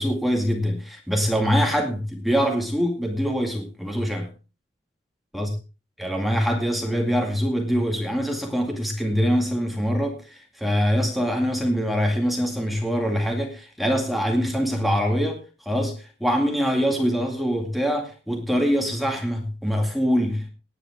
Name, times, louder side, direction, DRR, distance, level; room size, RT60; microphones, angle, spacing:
voice 1, 0.0-4.3 5.3-5.5 6.0-20.5, equal, ahead, 2.1 m, -24 dB
18.5 x 9.1 x 3.5 m
head